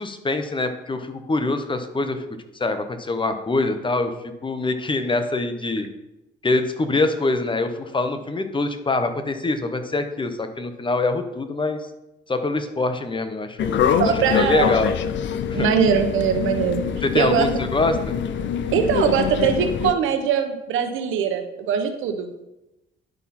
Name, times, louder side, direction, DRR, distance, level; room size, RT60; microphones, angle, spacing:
voice 1, 0.0-2.3 2.5-4.1 4.4-5.9 6.4-11.8 12.3-14.9 15.5-15.7 17.0-18.1, left 2 dB, 25° left, 8 dB, 1.0 m, -24 dB
sound 1, 13.6-19.9, left 8 dB, 65° left, 0.6 m, -24 dB
voice 2, 14.0-14.7 15.5-16.9 17.1-17.5 18.7-22.3, right 7 dB, 85° right, 7 dB, 1.0 m, -21 dB
10.5 x 5.6 x 4.3 m, 0.94 s
cardioid pair, 90°, 20 cm